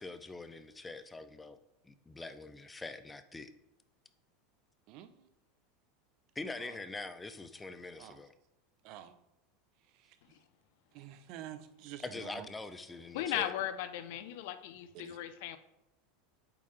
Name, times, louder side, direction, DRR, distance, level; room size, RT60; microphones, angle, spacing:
voice 1, 0.0-1.6 1.8-3.5 6.4-8.3 12.0-13.5, left 3 dB, 10° left, 10 dB, 0.4 m, -44 dB
voice 2, 4.9-5.3 6.5-6.8 8.0-8.2 8.8-9.1 9.9-10.2 10.9-12.5 14.9-15.2, right 11 dB, 50° right, 11 dB, 0.5 m, -49 dB
voice 3, 13.1-15.6, left 12 dB, 65° left, 11 dB, 0.5 m, -37 dB
8.5 x 3.6 x 3.2 m, 0.88 s
supercardioid pair, 145°, 0 cm